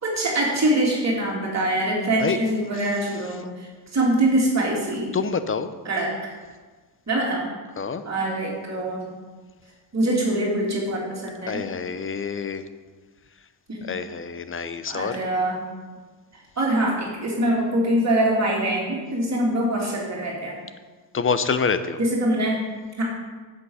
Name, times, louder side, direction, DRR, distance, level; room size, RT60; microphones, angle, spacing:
voice 1, 0.0-3.5 3.9-5.1 5.8-6.3 7.1-7.5 8.0-9.1 9.9-11.6 13.7-13.9 14.9-15.6 16.6-20.6 22.0-22.6 23.0-23.1, right 1 dB, 35° right, -3 dB, 2.9 m, -23 dB
voice 2, 2.7-3.5 5.1-5.7 7.8-8.0 11.5-12.7 13.8-15.2 21.1-22.0, left 5 dB, 25° left, 12 dB, 0.7 m, -27 dB
8.2 x 8.2 x 5.6 m, 1.4 s
supercardioid pair, 75°, 48 cm